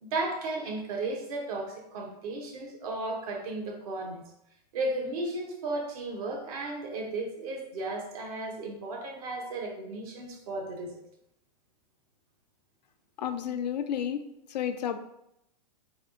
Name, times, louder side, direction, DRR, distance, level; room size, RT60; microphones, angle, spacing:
voice 1, 0.0-4.3 4.7-10.9, right 2 dB, 60° right, 1 dB, 1.1 m, -34 dB
voice 2, 13.2-14.2 14.5-15.0, left 9 dB, 80° left, 9 dB, 0.5 m, -31 dB
3.4 x 2.6 x 3.7 m, 0.80 s
hypercardioid pair, 135°, 21 cm